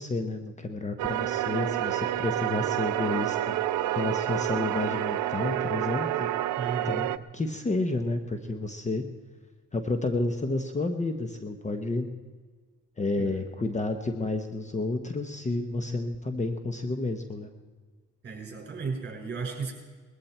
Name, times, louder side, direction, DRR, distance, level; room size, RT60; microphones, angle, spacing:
voice 1, 0.0-3.5 3.9-6.3 6.8-9.0 9.7-12.1 13.0-17.5, left 2 dB, 25° left, 7 dB, 1.1 m, -30 dB
sound 1, 1.0-7.2, right 13 dB, 75° right, 0.6 m, -29 dB
voice 2, 6.6-7.1 13.2-13.4 18.2-19.7, right 4 dB, 35° right, 1 dB, 5.8 m, -35 dB
20.5 x 14.0 x 4.4 m, 1.4 s
cardioid pair, 90°, 30 cm